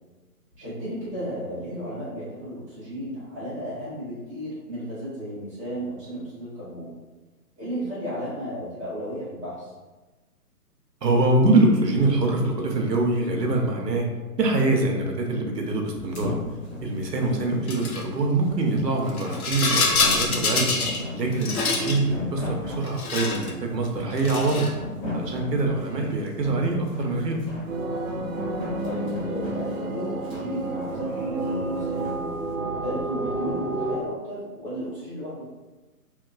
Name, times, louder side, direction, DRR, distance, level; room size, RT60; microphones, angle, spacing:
voice 1, 0.6-6.9 7.6-9.7 28.8-32.1 32.8-35.5, equal, 10° right, -12 dB, 0.7 m, -34 dB
voice 2, 11.0-14.1 14.4-16.3 16.8-20.7 21.1-24.7 25.1-27.4, right 2 dB, 90° right, 1 dB, 0.8 m, -24 dB
sound 1, 16.0-32.2, left 2 dB, 20° left, 0.9 m, -37 dB
Rattle, 17.7-18.0 19.1-21.0 21.3-22.0 22.8-23.5 24.1-24.8, left 3 dB, 60° left, 0.7 m, -25 dB
sound 2, 27.7-34.0, right 2 dB, 60° right, 0.6 m, -30 dB
2.9 x 2.8 x 2.4 m, 1.2 s
figure-of-eight pair, 145°, 48 cm